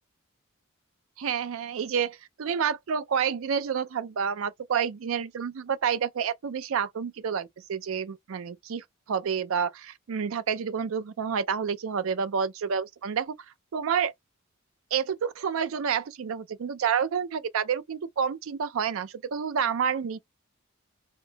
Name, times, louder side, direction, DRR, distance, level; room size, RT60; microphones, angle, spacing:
voice 1, 1.2-13.3 13.7-14.1 14.9-20.2, right 7 dB, 65° right, 0.4 m, -29 dB
3.7 x 2.6 x 2.2 m
head